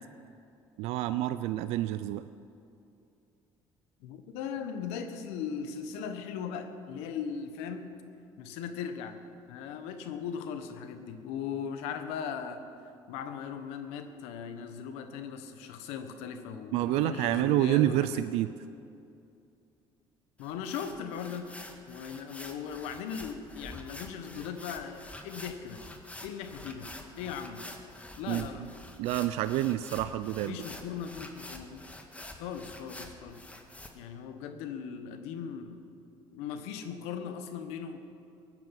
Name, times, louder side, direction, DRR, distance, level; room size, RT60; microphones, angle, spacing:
voice 1, 0.8-2.2 16.7-18.5 28.3-28.4 29.0-30.6, right 14 dB, 85° right, 12 dB, 0.4 m, -28 dB
voice 2, 4.0-7.9 8.4-9.2 9.5-12.7 13.1-18.2 20.4-21.5 21.9-25.8 26.2-26.9 27.2-27.7 28.2-28.7 30.3-31.9 32.4-33.4 33.9-35.8 36.3-38.0, left 7 dB, 90° left, 8 dB, 1.2 m, -38 dB
sound 1, 20.4-33.9, left 1 dB, 15° left, 1.6 m, -47 dB
17.0 x 9.3 x 7.5 m, 2.6 s
cardioid pair, 95°, 10 cm